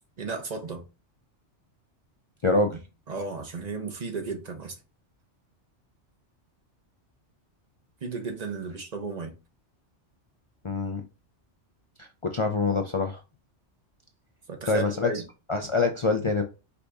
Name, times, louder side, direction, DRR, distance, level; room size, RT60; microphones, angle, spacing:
voice 1, 0.2-0.8 3.1-4.7 8.0-9.3 14.5-15.2, right 4 dB, 40° right, 0.9 m, -34 dB
voice 2, 2.4-2.8 10.6-11.0 12.0-13.2 14.7-15.1 15.5-16.4, left 3 dB, 50° left, 0.3 m, -25 dB
4.9 x 2.5 x 3.5 m
omnidirectional pair, 1.2 m